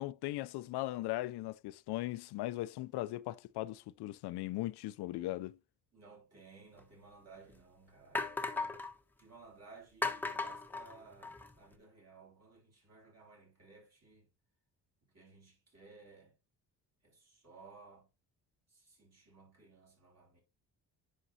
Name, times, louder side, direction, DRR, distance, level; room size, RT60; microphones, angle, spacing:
voice 1, 0.0-5.6, left 17 dB, 85° left, 0.5 m, -38 dB
voice 2, 5.9-8.8 9.2-14.3 15.1-16.3 17.0-18.1 18.7-20.4, right 4 dB, 40° right, 5.7 m, -58 dB
sound 1, 6.8-6.9 7.5-7.6 8.1-8.9 10.0-11.5, left 3 dB, 5° left, 1.0 m, -37 dB
10.0 x 5.3 x 2.7 m
cardioid pair, 100°, 39 cm